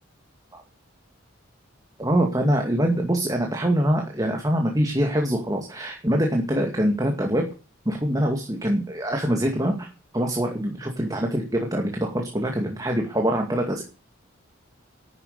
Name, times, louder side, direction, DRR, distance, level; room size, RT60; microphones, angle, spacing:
voice 1, 2.0-7.4 7.9-9.9 10.1-13.8, equal, 15° right, 2 dB, 2.3 m, -24 dB
12.0 x 9.7 x 8.3 m, 0.34 s
head